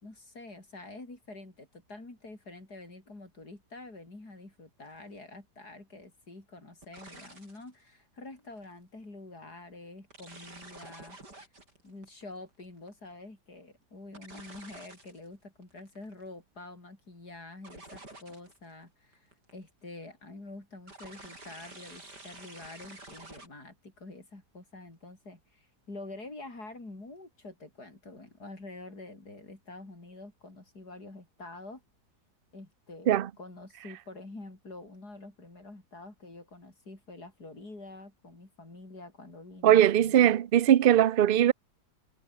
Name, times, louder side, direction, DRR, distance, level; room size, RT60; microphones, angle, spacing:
voice 1, 0.0-11.2 11.8-19.3 19.5-31.8 32.5-40.4, left 2 dB, 70° left, 6.7 m, -47 dB
sound 1, 4.9-5.1 6.8-7.7 8.4-8.7 10.1-13.1 14.1-15.3 15.6-16.2 17.6-18.7 19.1-19.7 20.9-23.5, right 2 dB, 85° right, 8.0 m, -49 dB
voice 2, 39.6-41.5, right 11 dB, 65° right, 0.5 m, -20 dB
omnidirectional pair, 1.7 m